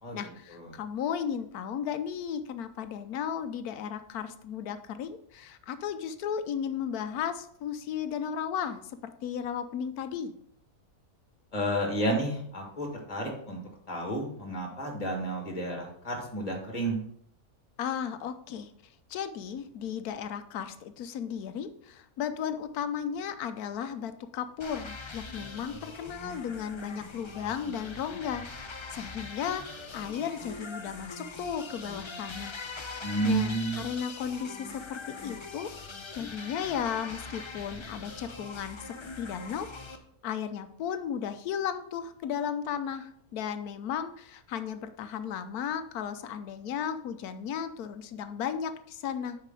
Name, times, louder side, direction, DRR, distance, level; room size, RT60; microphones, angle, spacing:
voice 1, 0.1-10.3 17.8-18.7 19.1-35.7 36.1-39.7 40.2-49.4, left 8 dB, 85° left, 10 dB, 1.2 m, -35 dB
voice 2, 11.5-13.6 13.9-17.0 33.0-33.8, right 1 dB, 25° left, 0 dB, 1.9 m, -31 dB
sound 1, 24.6-40.0, left 3 dB, 45° left, 0.3 m, -42 dB
8.2 x 5.8 x 3.7 m, 0.67 s
omnidirectional pair, 1.6 m